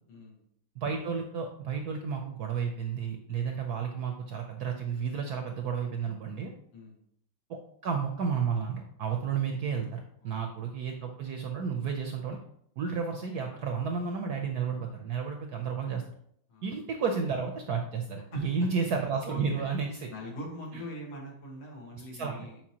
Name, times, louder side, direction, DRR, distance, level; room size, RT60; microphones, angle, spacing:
voice 1, 0.1-0.4 6.7-7.0 10.2-10.4 16.5-16.7 18.3-18.4 19.3-19.6 20.1-22.6, left 1 dB, 80° left, -1 dB, 2.4 m, -42 dB
voice 2, 0.8-6.5 7.8-12.4 12.8-16.0 16.6-20.1 20.7-20.8 22.1-22.5, right 6 dB, 70° right, 3 dB, 0.9 m, -32 dB
7.5 x 4.5 x 2.9 m, 0.70 s
omnidirectional pair, 2.3 m